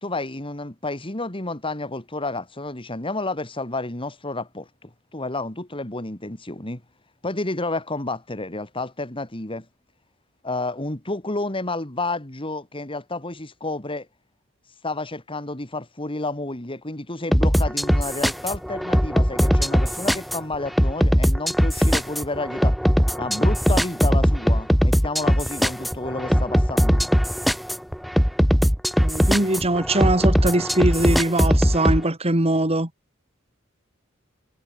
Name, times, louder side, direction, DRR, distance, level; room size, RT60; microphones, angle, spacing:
voice 1, 0.0-6.8 7.2-9.7 10.4-14.1 14.8-22.8 23.1-27.0, left 2 dB, 25° left, 2.7 m, -30 dB
sound 1, 17.3-32.0, equal, ahead, 0.4 m, -20 dB
voice 2, 29.0-32.9, right 1 dB, 30° right, 3.0 m, -22 dB
head